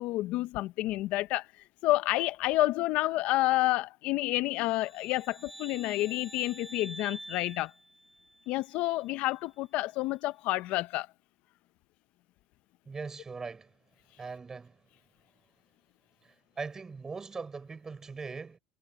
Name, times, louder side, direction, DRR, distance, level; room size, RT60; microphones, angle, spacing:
voice 1, 0.0-1.5 1.8-7.7 8.5-11.1, left 17 dB, 65° left, 0.7 m, -29 dB
sound 1, 4.7-8.7, right 1 dB, 5° right, 4.8 m, -48 dB
voice 2, 12.9-13.7 14.2-14.8 16.2-18.6, right 4 dB, 25° right, 5.8 m, -40 dB
supercardioid pair, 105°, 2 cm